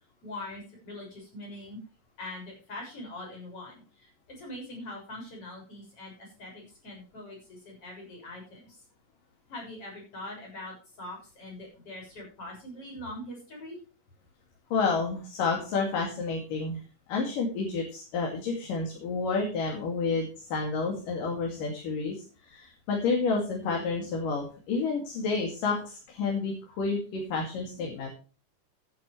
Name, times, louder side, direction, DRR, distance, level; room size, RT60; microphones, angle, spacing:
voice 1, 0.2-1.8 2.2-8.8 9.5-13.8, left 1 dB, 45° left, 0 dB, 7.5 m, -42 dB
voice 2, 14.7-16.8 17.1-22.2 22.5-28.1, left 4 dB, 90° left, 0 dB, 4.2 m, -30 dB
15.0 x 10.5 x 3.3 m, 0.37 s
omnidirectional pair, 3.7 m